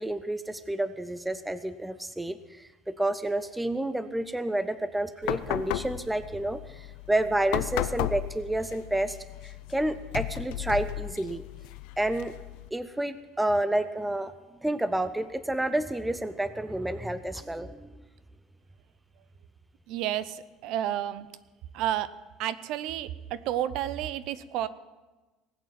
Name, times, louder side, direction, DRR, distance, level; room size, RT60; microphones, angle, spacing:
voice 1, 0.0-9.2 9.4-11.5 12.0-12.3 12.7-14.3 14.6-17.9, right 1 dB, 5° right, 12 dB, 0.4 m, -30 dB
sound 1, 5.2-12.7, left 15 dB, 65° left, 0.6 m, -35 dB
voice 2, 19.9-21.3 21.7-22.1 22.4-24.7, right 12 dB, 50° right, 16 dB, 0.6 m, -31 dB
19.0 x 8.3 x 7.5 m, 1.2 s
cardioid pair, 175°, 0 cm